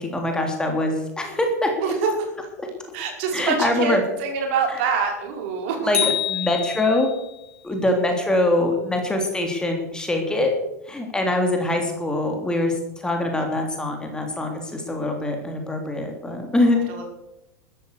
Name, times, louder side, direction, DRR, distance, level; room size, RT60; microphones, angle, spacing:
voice 1, 0.0-1.7 3.3-4.0 4.7-4.8 5.8-7.1 7.6-10.5 10.9-16.9, left 1 dB, 10° left, 3 dB, 3.2 m, -23 dB
voice 2, 1.8-2.1 2.9-5.9 16.5-16.6 16.9-17.1, right 5 dB, 50° right, 2 dB, 5.3 m, -25 dB
sound 1, 5.9-7.3, left 9 dB, 35° left, 5.8 m, -26 dB
14.5 x 13.0 x 6.7 m, 0.88 s
figure-of-eight pair, 85°, 9 cm